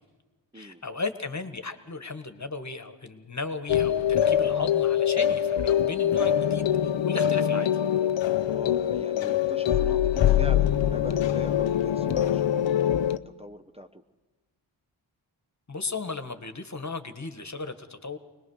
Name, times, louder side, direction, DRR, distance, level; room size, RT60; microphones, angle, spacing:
voice 1, 0.5-7.7 15.7-18.2, left 3 dB, 35° left, 9 dB, 1.6 m, -35 dB
sound 1, 3.7-13.2, left 10 dB, 65° left, 0.7 m, -24 dB
voice 2, 8.4-14.0, right 1 dB, 10° right, 5 dB, 0.8 m, -42 dB
22.0 x 19.5 x 6.5 m, 1.3 s
cardioid pair, 40°, 48 cm